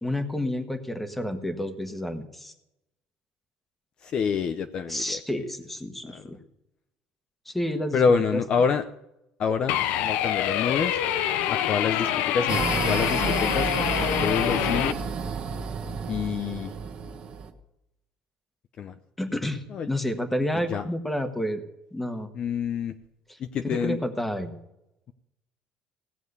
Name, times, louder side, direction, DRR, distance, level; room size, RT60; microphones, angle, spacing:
voice 1, 0.0-2.5 4.9-6.4 7.5-8.0 8.3-8.4 19.2-21.6 21.9-22.3 23.7-24.6, left 1 dB, 5° left, 7 dB, 1.4 m, -30 dB
voice 2, 4.0-5.2 6.1-6.2 7.9-8.8 9.4-11.0 11.5-13.7 14.0-15.0 16.1-16.7 18.8-18.9 19.7-19.9 20.7-20.9 22.3-22.9 23.4-24.0, left 6 dB, 40° left, 9 dB, 0.7 m, -27 dB
sound 1, 9.7-14.9, left 11 dB, 80° left, 0.7 m, -26 dB
sound 2, 12.5-17.5, right 5 dB, 40° right, 1.4 m, -31 dB
17.0 x 7.2 x 8.2 m, 0.86 s
cardioid pair, 155°, 3 cm